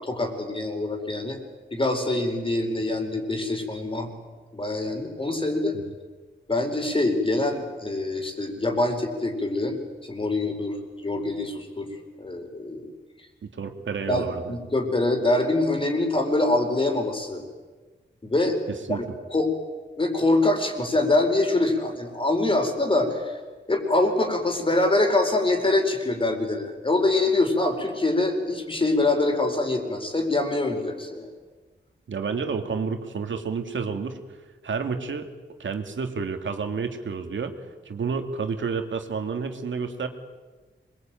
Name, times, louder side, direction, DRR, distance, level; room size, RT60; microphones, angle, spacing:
voice 1, 0.0-1.4 1.7-4.1 4.5-5.7 6.5-11.9 12.2-12.9 14.1-17.4 18.2-18.6 18.9-19.0 19.3-19.5 20.0-23.4 23.7-31.3, left 2 dB, 30° left, 4 dB, 4.7 m, -24 dB
voice 2, 13.4-14.5 18.9-19.0 32.1-34.2 34.6-35.3 35.6-37.5 37.9-40.1, right 5 dB, 90° right, 6 dB, 2.5 m, -30 dB
26.0 x 22.5 x 9.1 m, 1.3 s
wide cardioid pair, 150°, 19 cm